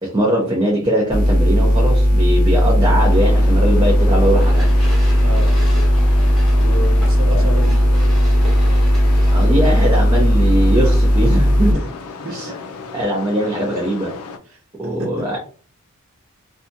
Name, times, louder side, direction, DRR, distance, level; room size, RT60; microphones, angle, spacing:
voice 1, 0.0-4.7 7.3-7.5 9.3-11.9 12.2-12.6 12.9-14.1 14.8-15.4, right 1 dB, 20° right, -2 dB, 0.5 m, -21 dB
sound 1, 1.1-11.7, equal, 40° left, 0.6 m, -15 dB
sound 2, 3.1-14.4, left 4 dB, 85° left, 0.4 m, -35 dB
sound 3, 4.3-9.8, left 1 dB, ahead, 0.8 m, -36 dB
voice 2, 6.6-7.8 11.7-11.8 12.2-12.5 14.5-14.6 15.0-15.3, right 1 dB, 65° right, 3 dB, 0.8 m, -30 dB
2.7 x 2.2 x 2.6 m, 0.40 s
head